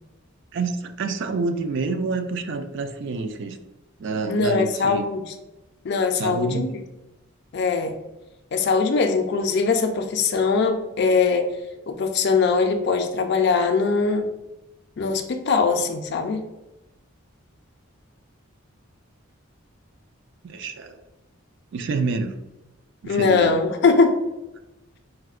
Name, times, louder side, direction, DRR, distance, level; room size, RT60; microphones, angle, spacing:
voice 1, 0.5-3.6 4.0-5.1 6.1-6.7 20.4-21.0 21.7-22.3 23.0-23.6, right 4 dB, 60° right, 7 dB, 0.3 m, -28 dB
voice 2, 4.3-5.2 5.8-6.7 7.5-7.9 8.5-11.5 11.9-14.2 15.0-16.4 23.0-24.2, left 4 dB, 55° left, 6 dB, 0.4 m, -21 dB
4.5 x 2.1 x 2.3 m, 0.99 s
head